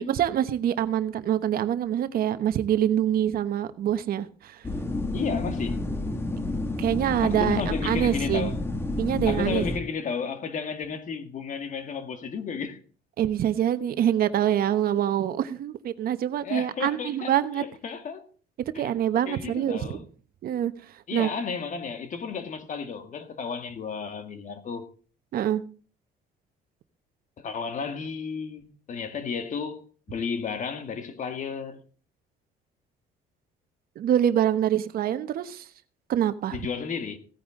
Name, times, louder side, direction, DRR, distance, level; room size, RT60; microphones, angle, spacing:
voice 1, 0.0-4.6 6.8-8.5 9.0-9.7 13.2-17.6 18.8-20.0 20.4-20.7 21.1-21.3 25.3-25.6 34.0-35.7 36.1-36.6, right 10 dB, 60° right, 1.1 m, -25 dB
sound 1, 4.6-9.8, left 2 dB, 15° left, 1.5 m, -30 dB
voice 2, 5.1-5.9 7.2-8.6 9.3-12.8 16.4-18.3 18.7-18.9 19.3-20.0 21.1-24.9 27.4-31.8 36.5-37.2, left 5 dB, 50° left, 1.9 m, -33 dB
16.0 x 9.5 x 3.8 m
cardioid pair, 110°, 17 cm